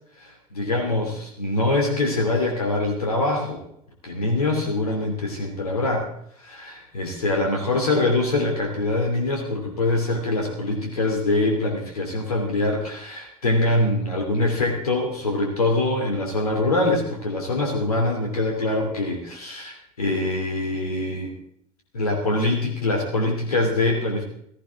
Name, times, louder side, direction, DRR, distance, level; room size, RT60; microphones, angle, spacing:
voice 1, 0.2-3.6 4.0-6.1 6.4-21.3 21.9-24.2, left 2 dB, 80° left, 2 dB, 2.9 m, -24 dB
16.5 x 15.5 x 3.6 m, 0.71 s
figure-of-eight pair, 70°, 19 cm